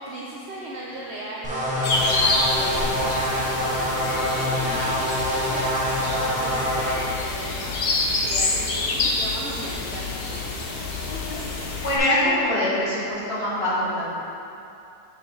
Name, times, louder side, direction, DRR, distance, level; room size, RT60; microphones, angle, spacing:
voice 1, 0.0-10.4, right 1 dB, 60° right, -4 dB, 0.7 m, -37 dB
sound 1, 1.4-7.0, equal, 10° right, 0.4 m, -25 dB
sound 2, 1.8-12.0, left 3 dB, 60° left, 0.6 m, -27 dB
voice 2, 11.8-14.1, left 1 dB, 40° left, -8 dB, 1.4 m, -23 dB
6.8 x 5.7 x 3.2 m, 2.7 s
omnidirectional pair, 1.8 m